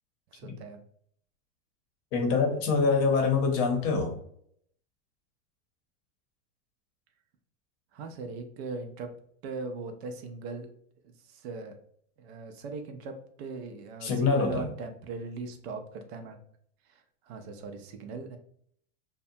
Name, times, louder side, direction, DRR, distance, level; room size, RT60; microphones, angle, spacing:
voice 1, 0.3-0.8 7.9-9.1 9.4-10.7 11.0-11.7 12.2-16.4 16.9-18.4, right 3 dB, 55° right, 6 dB, 0.5 m, -39 dB
voice 2, 2.1-4.1 14.0-14.7, left 4 dB, 40° left, 3 dB, 0.7 m, -25 dB
2.7 x 2.2 x 2.6 m, 0.65 s
supercardioid pair, 125°, 38 cm